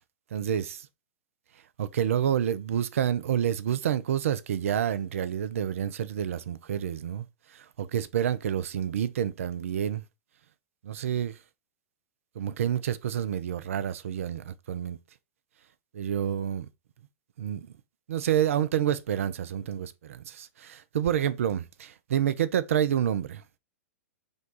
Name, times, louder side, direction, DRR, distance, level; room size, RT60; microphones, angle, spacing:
voice 1, 0.3-0.6 1.8-7.3 7.8-10.0 10.8-11.4 12.4-15.0 15.9-16.7 17.4-17.7 18.1-23.4, right 9 dB, 65° right, 0.4 m, -28 dB
5.1 x 2.3 x 3.7 m
figure-of-eight pair, 105°, 8 cm